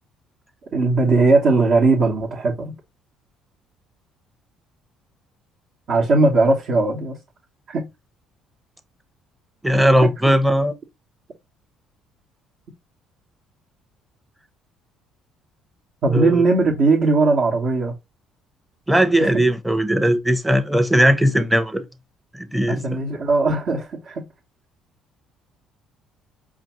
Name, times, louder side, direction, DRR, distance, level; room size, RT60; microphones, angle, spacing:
voice 1, 0.7-2.7 5.9-7.2 7.7-7.9 10.0-10.1 16.0-17.9 19.2-19.3 22.7-24.3, right 3 dB, 55° right, 1.1 m, -19 dB
voice 2, 9.6-10.7 16.0-16.4 18.9-21.8 22.3-22.8, equal, 5° right, 0.7 m, -18 dB
5.0 x 2.5 x 2.9 m
hypercardioid pair, 60°, 0 cm